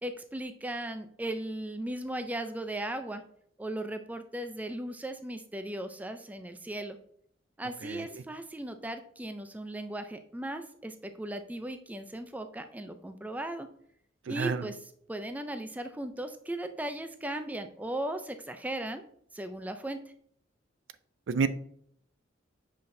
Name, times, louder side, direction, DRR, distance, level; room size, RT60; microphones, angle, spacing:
voice 1, 0.0-3.2 3.6-7.0 7.6-13.7 14.3-19.0 19.3-20.0, right 1 dB, 10° right, 8 dB, 0.4 m, -37 dB
voice 2, 14.3-14.7 21.3-21.5, right 5 dB, 75° right, 13 dB, 0.4 m, -29 dB
7.7 x 5.2 x 2.6 m, 0.66 s
head